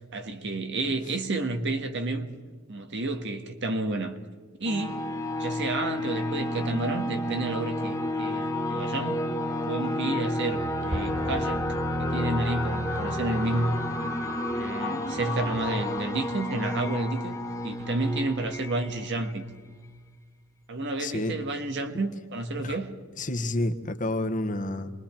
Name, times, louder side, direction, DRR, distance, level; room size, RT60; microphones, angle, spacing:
voice 1, 0.0-2.3 2.7-4.2 4.6-5.0 5.4-9.3 9.7-11.7 12.0-13.8 14.5-19.4 20.7-23.0, right 2 dB, 60° right, 1.7 m, -30 dB
sound 1, 4.7-20.0, left 1 dB, 15° left, 1.9 m, -31 dB
Explosion, 10.9-12.7, equal, 45° right, 3.4 m, -38 dB
voice 2, 21.0-21.3 22.6-22.8 23.2-24.9, left 1 dB, 40° left, 1.4 m, -29 dB
27.5 x 21.5 x 4.5 m
head